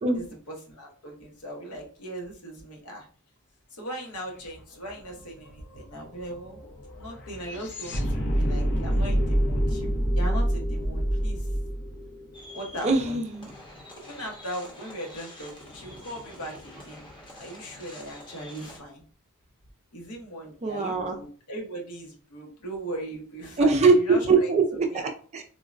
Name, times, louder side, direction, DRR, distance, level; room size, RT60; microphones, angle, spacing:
voice 1, 0.1-3.1 3.7-6.6 7.0-11.5 12.5-13.2 14.1-17.1 17.4-19.0 19.9-24.5 24.9-25.0, right 1 dB, 75° left, 0 dB, 1.0 m, -38 dB
sound 1, 4.5-4.6 4.9-13.1, equal, 55° left, 0.7 m, -27 dB
sound 2, 12.3-18.8, left 1 dB, 20° left, 0.9 m, -47 dB
voice 2, 12.8-13.5 20.6-21.2 23.6-25.4, right 4 dB, 30° right, 4 dB, 0.4 m, -22 dB
3.6 x 2.1 x 2.5 m, 0.41 s
head